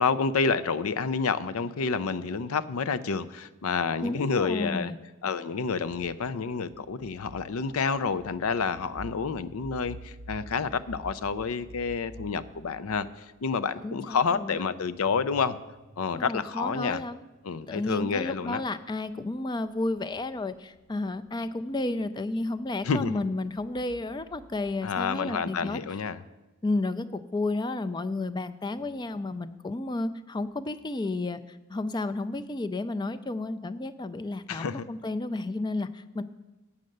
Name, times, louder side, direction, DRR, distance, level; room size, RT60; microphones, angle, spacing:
voice 1, 0.0-4.9 5.2-15.6 16.0-17.0 17.4-18.6 22.8-23.2 24.8-26.2 34.5-34.8, left 5 dB, 75° left, 0.5 m, -29 dB
voice 2, 4.0-5.0 13.8-14.6 16.2-17.2 17.7-25.8 26.6-36.2, left 2 dB, 20° left, 0.4 m, -32 dB
sound 1, 5.5-17.8 18.8-24.8, right 1 dB, 40° right, 0.5 m, -50 dB
8.6 x 6.4 x 7.8 m
head